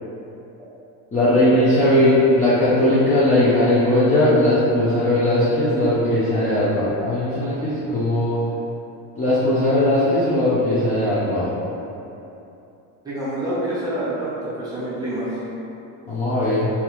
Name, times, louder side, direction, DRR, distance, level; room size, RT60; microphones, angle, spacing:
voice 1, 1.1-8.4 9.2-11.5 16.1-16.7, left 1 dB, 20° left, -12 dB, 0.5 m, -18 dB
voice 2, 13.0-15.3, right 1 dB, 10° right, -11 dB, 0.9 m, -27 dB
3.7 x 2.8 x 2.9 m, 2.8 s
cardioid pair, 150°, 37 cm